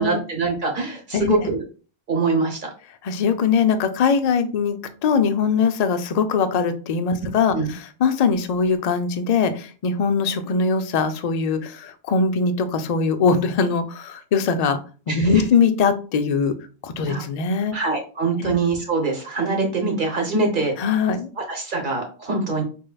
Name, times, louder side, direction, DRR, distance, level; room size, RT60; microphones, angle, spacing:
voice 1, 0.0-1.6 2.1-2.7 7.5-7.7 15.1-15.3 17.1-17.2 17.7-20.7 21.5-22.6, right 3 dB, 50° right, 2 dB, 1.1 m, -23 dB
voice 2, 3.0-4.8 5.0-14.8 15.1-16.6 16.8-17.8 18.4-18.6 20.8-21.3, left 5 dB, 55° left, 9 dB, 0.4 m, -21 dB
4.4 x 3.2 x 2.3 m, 0.37 s
omnidirectional pair, 1.1 m